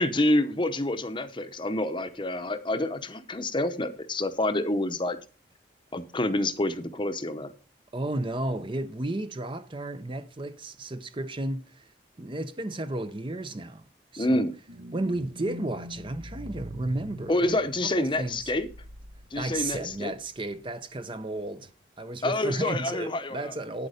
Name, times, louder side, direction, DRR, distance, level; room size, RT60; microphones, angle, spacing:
voice 1, 0.0-5.2 5.9-7.5 14.2-14.5 17.3-18.7 19.3-20.1 22.2-23.5, left 1 dB, 25° left, 0.8 m, -27 dB
voice 2, 7.9-11.9 12.2-13.9 14.1-14.5 14.9-18.5 19.4-21.7 22.0-23.9, right 2 dB, 30° right, 0.7 m, -33 dB
sound 1, 14.7-20.4 20.7-20.8, right 1 dB, 70° right, 1.2 m, -44 dB
9.2 x 8.3 x 5.0 m
head